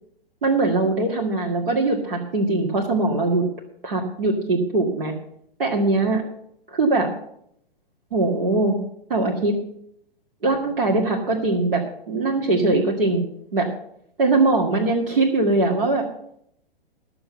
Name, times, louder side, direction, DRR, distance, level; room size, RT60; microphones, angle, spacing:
voice 1, 0.4-3.4 3.8-5.1 5.6-6.2 6.7-7.1 8.1-8.8 9.1-9.5 10.4-13.2 13.5-13.7 14.2-16.1, right 2 dB, 70° right, -2 dB, 2.1 m, -21 dB
12.0 x 7.2 x 6.9 m, 0.72 s
figure-of-eight pair, 115°, 29 cm